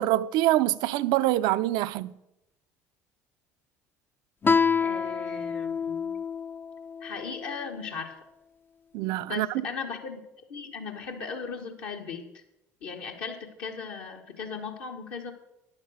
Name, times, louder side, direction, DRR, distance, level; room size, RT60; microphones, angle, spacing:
voice 1, 0.0-2.1 8.9-9.5, right 15 dB, 60° right, 0.4 m, -25 dB
Guitar, 4.4-7.7, left 5 dB, 25° left, 0.5 m, -28 dB
voice 2, 4.8-6.2 7.0-8.1 9.2-10.2 10.5-12.4 12.8-15.3, left 5 dB, 60° left, 1.4 m, -37 dB
10.0 x 7.4 x 6.2 m
figure-of-eight pair, 60°, 8 cm